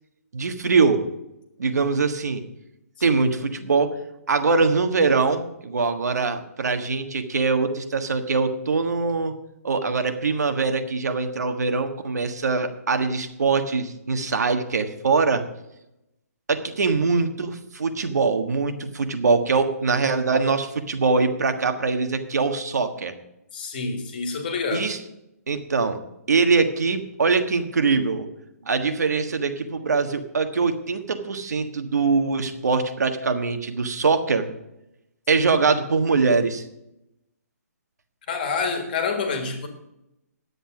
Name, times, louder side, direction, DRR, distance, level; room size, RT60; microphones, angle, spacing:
voice 1, 0.3-1.1 1.6-2.4 3.0-4.0 4.3-9.3 9.6-15.4 16.5-23.1 24.7-25.0 25.5-26.0 26.3-28.3 28.6-34.5 35.3-36.6, right 4 dB, 85° right, 1.5 m, -23 dB
voice 2, 23.5-24.9 38.3-39.7, left 4 dB, 35° left, 1.6 m, -27 dB
10.0 x 8.2 x 6.0 m
hypercardioid pair, 175°, 9 cm